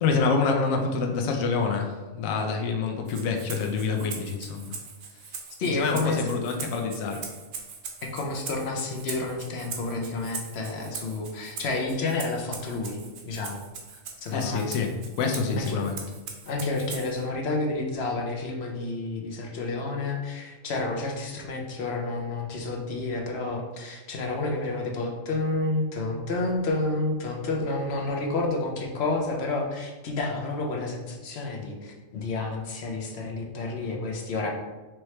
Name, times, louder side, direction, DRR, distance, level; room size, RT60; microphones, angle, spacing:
voice 1, 0.0-4.8 5.7-7.3 14.3-14.9 15.2-16.0, left 4 dB, 80° left, 2 dB, 1.0 m, -27 dB
Rattle (instrument), 3.1-17.2, right 5 dB, 75° right, 1.1 m, -41 dB
voice 2, 5.6-6.3 8.0-13.0 13.2-13.6 13.9-14.6 15.5-15.8 16.5-34.6, left 3 dB, 60° left, 1 dB, 0.9 m, -30 dB
4.6 x 3.0 x 3.1 m, 1.2 s
omnidirectional pair, 1.4 m